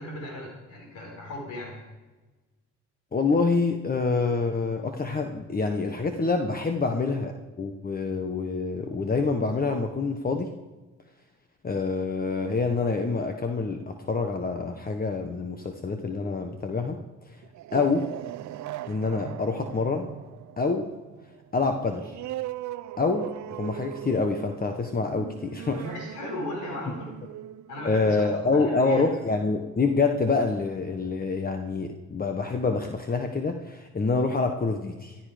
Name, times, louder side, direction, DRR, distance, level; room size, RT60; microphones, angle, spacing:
voice 1, 0.0-1.9 25.6-27.1 27.7-29.0, left 1 dB, 80° left, -1 dB, 5.1 m, -37 dB
voice 2, 3.1-10.5 11.6-17.0 17.7-18.1 18.9-20.1 20.6-20.9 21.5-22.1 23.0-25.8 27.8-35.2, left 4 dB, 30° left, 5 dB, 1.2 m, -26 dB
sound 1, 17.4-28.6, right 14 dB, 70° right, 0.6 m, -39 dB
14.0 x 14.0 x 5.1 m, 1.2 s
cardioid pair, 90°, 30 cm